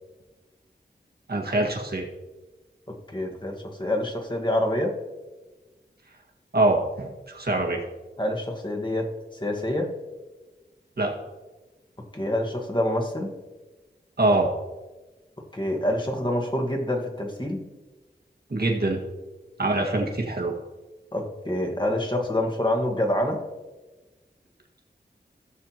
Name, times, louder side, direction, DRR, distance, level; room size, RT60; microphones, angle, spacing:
voice 1, 1.3-2.0 6.5-7.8 11.0-11.1 14.2-14.5 18.5-19.0 19.6-20.5, right 2 dB, 60° right, 0 dB, 1.8 m, -24 dB
voice 2, 2.9-5.0 8.2-9.1 9.4-9.9 12.1-13.4 15.5-17.7 21.1-23.4, left 1 dB, 25° left, 1 dB, 1.6 m, -27 dB
16.0 x 6.7 x 3.0 m, 1.2 s
cardioid pair, 45°, 18 cm